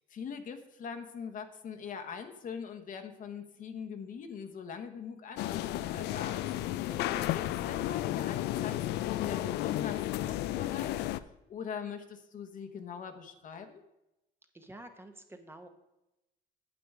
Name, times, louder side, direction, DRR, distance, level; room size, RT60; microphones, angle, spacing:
voice 1, 0.1-6.5 7.3-11.1 11.5-13.8, left 6 dB, 50° left, 6 dB, 1.1 m, -42 dB
sound 1, 5.4-11.2, left 14 dB, 85° left, 0.4 m, -33 dB
voice 2, 6.9-7.3 14.5-15.7, right 1 dB, 15° right, 6 dB, 0.9 m, -49 dB
8.7 x 7.8 x 4.8 m, 0.94 s
cardioid pair, 110°, 17 cm